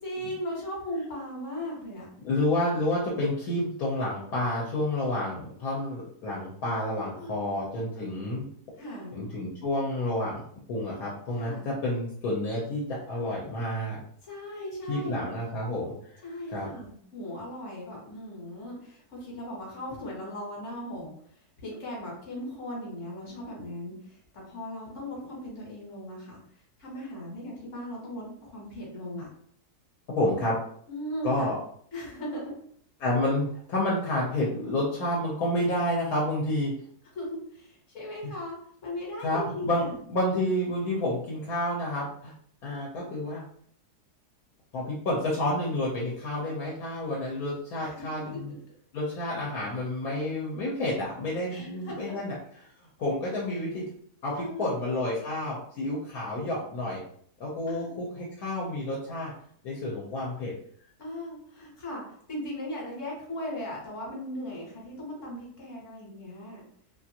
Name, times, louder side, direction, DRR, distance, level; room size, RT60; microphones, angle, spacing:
voice 1, 0.0-2.1 6.9-7.5 8.7-9.3 11.4-11.7 14.2-15.3 16.2-21.1 21.6-26.4 26.8-29.3 30.9-31.5 31.9-32.5 37.1-38.6 38.8-40.0 47.8-48.1 48.3-48.6 51.5-52.3 53.5-53.6 54.3-54.7 57.7-57.9 61.0-62.0 62.3-66.6, left 1 dB, 55° left, -3 dB, 1.3 m, -38 dB
voice 2, 2.2-8.5 9.1-10.4 10.7-14.0 14.9-15.9 16.5-16.7 30.2-30.6 31.2-31.5 33.0-36.7 39.2-39.8 40.1-42.3 42.6-43.4 44.7-48.5 48.9-52.4 53.0-53.8 54.2-57.0 57.4-59.3 59.6-60.5, left 1 dB, 70° left, -5 dB, 1.2 m, -29 dB
2.8 x 2.5 x 2.7 m, 0.63 s
omnidirectional pair, 1.7 m